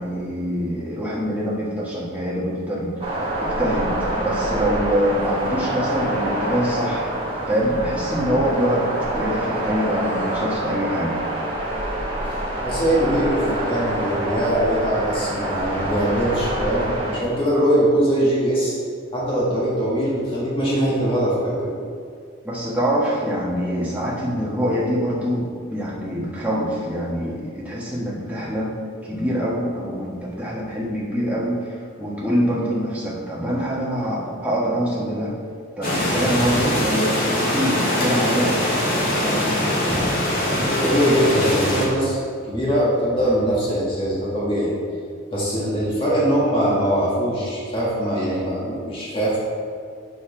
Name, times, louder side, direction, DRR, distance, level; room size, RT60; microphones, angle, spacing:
voice 1, 0.0-3.0 3.4-7.1 7.5-11.2 22.4-28.7 29.0-35.3 35.8-38.6 39.1-39.6, equal, 5° right, -6 dB, 1.3 m, -24 dB
sound 1, 3.0-17.2, right 1 dB, 25° right, 1.5 m, -26 dB
voice 2, 12.6-18.7 19.1-21.7 40.5-42.2 42.4-44.7 45.3-49.4, equal, 25° left, -8 dB, 1.8 m, -21 dB
sound 2, 35.8-41.9, left 1 dB, 45° left, 1.8 m, -22 dB
8.1 x 6.5 x 3.3 m, 2.3 s
head